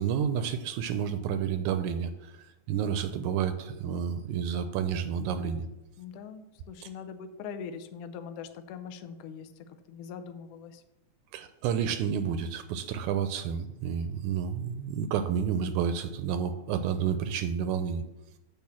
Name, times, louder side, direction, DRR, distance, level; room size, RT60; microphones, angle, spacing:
voice 1, 0.0-5.7 11.3-18.0, right 7 dB, 80° right, 10 dB, 1.9 m, -30 dB
voice 2, 6.0-9.5 9.9-10.8, left 6 dB, 80° left, 9 dB, 1.3 m, -42 dB
10.0 x 3.7 x 7.2 m, 0.93 s
omnidirectional pair, 3.6 m